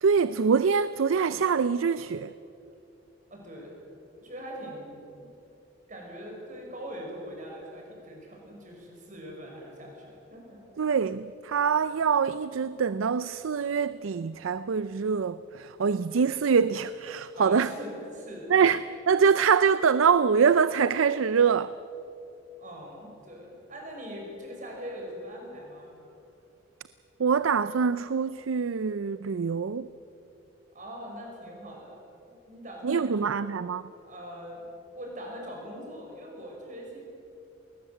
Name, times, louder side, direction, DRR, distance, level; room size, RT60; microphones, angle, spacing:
voice 1, 0.0-2.3 10.8-17.7 18.5-21.7 27.2-29.9 32.8-33.9, right 6 dB, 85° right, 0.5 m, -24 dB
voice 2, 3.3-3.7 4.2-5.3 5.9-10.6 17.4-18.5 22.6-25.9 30.7-32.0 32.5-33.3 34.0-34.6 34.9-37.0, equal, 40° right, 5.8 m, -42 dB
21.0 x 19.0 x 7.9 m
head